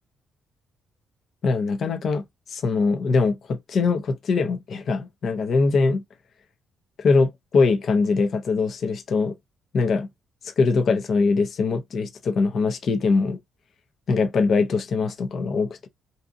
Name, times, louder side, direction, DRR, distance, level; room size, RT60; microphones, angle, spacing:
voice 1, 1.4-6.0 7.0-9.3 9.7-10.1 10.4-13.4 14.1-15.9, left 4 dB, 60° left, 0.6 m, -22 dB
2.7 x 2.4 x 2.5 m
cardioid pair, 90°, 0 cm